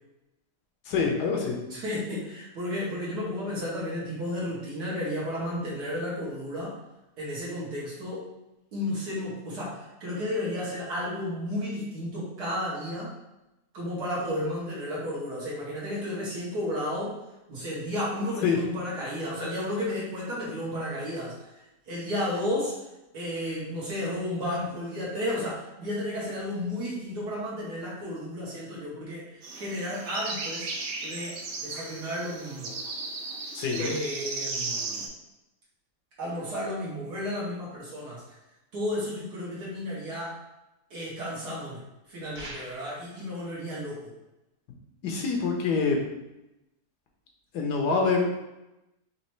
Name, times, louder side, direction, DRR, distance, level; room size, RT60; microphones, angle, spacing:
voice 1, 0.9-1.6 18.4-18.6 33.5-33.9 45.0-46.0 47.5-48.3, left 5 dB, 75° left, 1 dB, 1.3 m, -25 dB
voice 2, 1.7-6.7 7.2-8.3 8.7-13.1 13.7-17.2 17.5-21.4 21.9-22.8 23.1-30.7 31.0-32.7 33.8-35.0 36.2-38.2 38.7-40.4 40.9-41.8 42.1-44.1, left 1 dB, 70° right, -6 dB, 1.5 m, -33 dB
sound 1, 29.4-35.1, right 3 dB, 85° right, 1.3 m, -35 dB
sound 2, 42.3-43.1, right 1 dB, 50° right, 1.5 m, -42 dB
4.2 x 3.0 x 3.0 m, 0.94 s
omnidirectional pair, 1.8 m